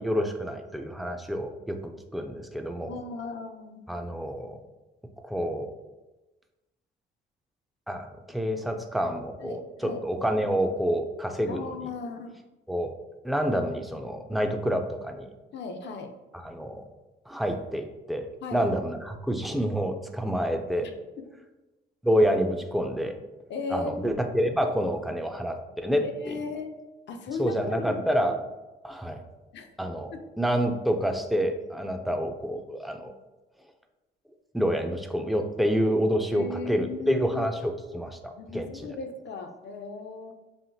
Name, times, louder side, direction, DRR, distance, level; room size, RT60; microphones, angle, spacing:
voice 1, 0.0-1.8 2.1-2.9 3.9-4.6 5.2-5.7 7.9-11.9 12.7-12.9 13.2-15.3 16.3-16.8 17.3-20.9 22.0-23.2 23.7-26.3 27.4-28.4 28.8-29.2 29.8-33.1 34.5-38.7, equal, ahead, 5 dB, 0.4 m, -28 dB
voice 2, 2.8-3.9 9.4-10.0 11.5-12.4 15.5-16.1 18.4-18.7 20.8-20.9 23.5-24.2 26.0-26.7 27.1-28.1 29.5-29.7 30.1-30.2 36.3-37.5 38.4-40.3, left 4 dB, 65° left, 5 dB, 0.6 m, -36 dB
5.7 x 2.5 x 2.7 m, 1.1 s
cardioid pair, 90°, 20 cm